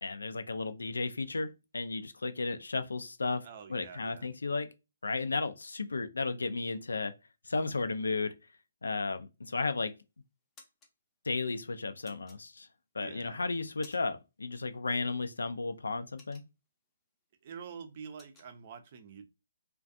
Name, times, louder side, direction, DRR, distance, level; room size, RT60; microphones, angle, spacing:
voice 1, 0.0-3.4 3.7-4.7 5.0-7.1 7.5-8.3 8.8-9.9 11.3-12.7 12.9-16.4, left 3 dB, 80° left, 0.4 m, -34 dB
voice 2, 3.4-4.3 13.0-13.4 17.4-19.3, right 6 dB, 40° right, 0.5 m, -47 dB
sound 1, 9.9-10.0 10.3-10.9 12.0-12.9 13.4-14.3 14.6-14.8 15.2-16.9 17.3-17.5 17.7-18.5, left 3 dB, 15° left, 0.6 m, -58 dB
2.4 x 2.2 x 2.5 m
figure-of-eight pair, 145°, 0 cm